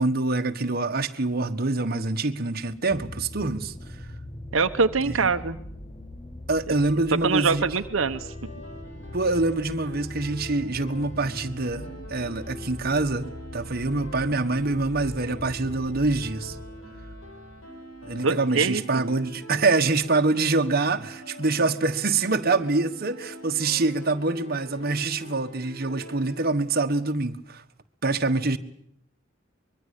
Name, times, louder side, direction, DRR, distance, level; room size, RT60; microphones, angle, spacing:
voice 1, 0.0-4.1 5.0-5.3 6.5-7.6 9.1-16.6 18.0-27.6 28.0-28.6, right 3 dB, 50° right, 1.5 m, -25 dB
sound 1, 2.7-18.3 19.1-19.2, left 1 dB, 25° left, 1.8 m, -41 dB
voice 2, 4.5-5.6 7.2-8.5 18.2-19.0, right 4 dB, 80° right, 1.1 m, -24 dB
sound 2, 7.7-26.4, equal, 70° left, 7.4 m, -45 dB
24.5 x 22.5 x 8.4 m
head